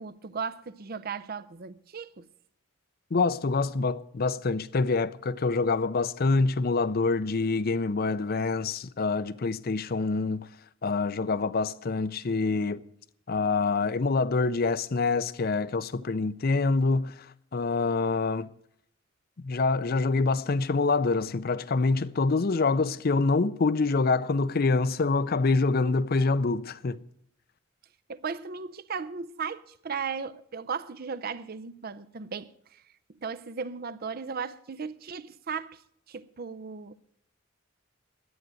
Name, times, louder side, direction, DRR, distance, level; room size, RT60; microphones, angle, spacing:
voice 1, 0.0-2.3 28.1-32.8 33.2-35.8 36.1-36.9, right 5 dB, 50° right, 0.6 m, -36 dB
voice 2, 3.1-10.5 10.8-12.8 13.3-17.1 17.5-18.5 19.4-27.0, left 3 dB, 50° left, 0.5 m, -26 dB
11.0 x 8.9 x 9.1 m
head